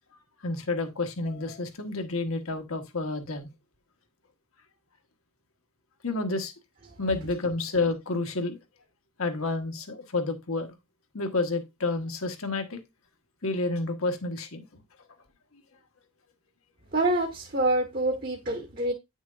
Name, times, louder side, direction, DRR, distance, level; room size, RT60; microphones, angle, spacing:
voice 1, 0.4-3.5 6.0-6.5 7.0-8.6 9.2-10.7 11.1-12.8 13.4-14.6, left 3 dB, 75° left, 1.4 m, -29 dB
voice 2, 16.9-18.9, right 2 dB, 40° right, 1.2 m, -26 dB
9.5 x 6.2 x 2.5 m
head